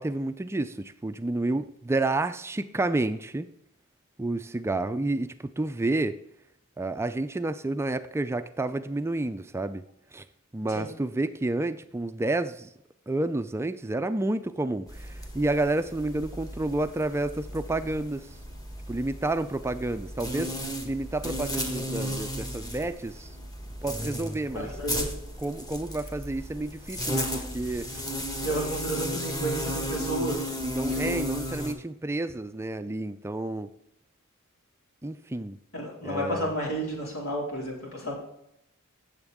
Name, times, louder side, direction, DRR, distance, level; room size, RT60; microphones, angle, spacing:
voice 1, 0.0-3.5 4.2-6.2 6.8-9.8 10.1-10.2 10.5-12.7 13.1-18.3 18.9-20.6 20.8-23.3 23.8-24.7 25.4-28.0 30.6-33.7 35.0-35.6 36.0-36.5, right 2 dB, 10° right, 10 dB, 0.3 m, -30 dB
sound 1, 14.9-31.7, equal, 20° left, 1.5 m, -34 dB
voice 2, 24.5-25.1 28.4-30.4 30.9-31.2 35.7-38.1, right 1 dB, 80° left, -2 dB, 4.1 m, -31 dB
16.0 x 7.2 x 3.6 m, 0.77 s
head